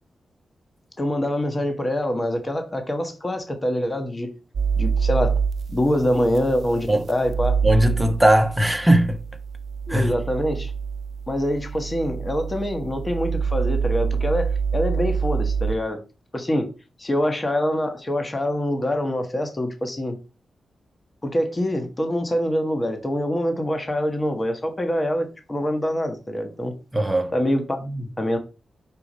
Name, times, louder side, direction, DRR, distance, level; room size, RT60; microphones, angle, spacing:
voice 1, 1.0-4.3 4.8-5.4 5.7-7.6 9.9-10.7 11.3-16.0 16.3-16.7 17.0-20.2 21.2-26.7 27.3-28.4, equal, 25° left, 1.3 m, -25 dB
sound 1, 4.5-15.7, right 6 dB, 70° right, 0.5 m, -26 dB
voice 2, 7.6-9.2 9.9-10.1 26.9-27.3, right 1 dB, 5° right, 1.0 m, -18 dB
5.2 x 4.4 x 4.2 m
cardioid pair, 75°, 0 cm